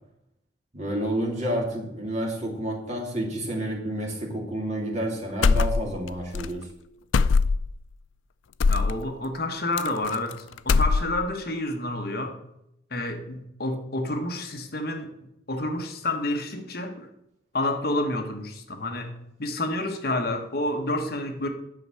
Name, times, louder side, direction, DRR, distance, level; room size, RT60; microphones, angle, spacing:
voice 1, 0.7-6.7, right 1 dB, 35° right, 0 dB, 2.6 m, -29 dB
sound 1, 5.4-6.1 6.3-6.5 7.1-7.8 8.6-8.9 9.8-10.3 10.6-11.3, left 4 dB, 85° left, 0.4 m, -21 dB
voice 2, 8.6-12.4 12.9-17.1 17.5-21.5, left 2 dB, 55° left, 5 dB, 1.3 m, -29 dB
10.5 x 5.6 x 7.6 m, 0.81 s
head